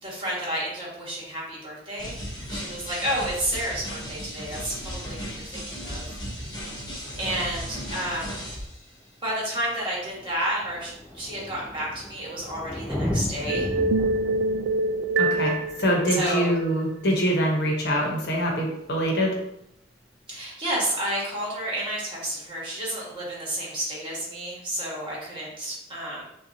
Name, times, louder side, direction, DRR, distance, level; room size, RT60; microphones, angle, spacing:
voice 1, 0.0-2.2 2.5-6.1 6.9-8.3 9.2-13.7 16.1-16.5 20.3-26.3, right 1 dB, 25° right, -4 dB, 1.4 m, -31 dB
sound 1, 2.0-8.9, equal, 25° left, 1.0 m, -36 dB
Thunder, 8.6-8.7 9.6-9.7 9.9-17.3 18.9-19.0, left 1 dB, 5° right, 0.8 m, -35 dB
sound 2, 13.5-16.8, right 2 dB, 75° right, 0.3 m, -25 dB
voice 2, 15.2-19.3, equal, 60° left, -1 dB, 1.0 m, -24 dB
5.6 x 2.4 x 2.8 m, 0.80 s
head